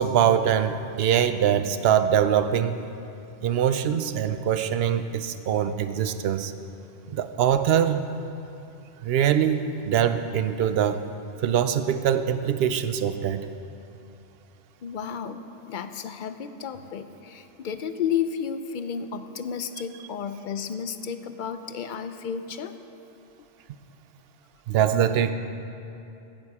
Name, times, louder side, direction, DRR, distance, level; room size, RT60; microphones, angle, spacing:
voice 1, 0.0-2.8 3.4-6.5 7.1-8.0 9.0-11.0 11.4-13.5 24.7-25.3, right 9 dB, 65° right, 10 dB, 0.8 m, -23 dB
voice 2, 14.8-22.7, left 7 dB, 55° left, 10 dB, 0.6 m, -32 dB
16.5 x 7.6 x 4.8 m, 2.8 s
omnidirectional pair, 1.2 m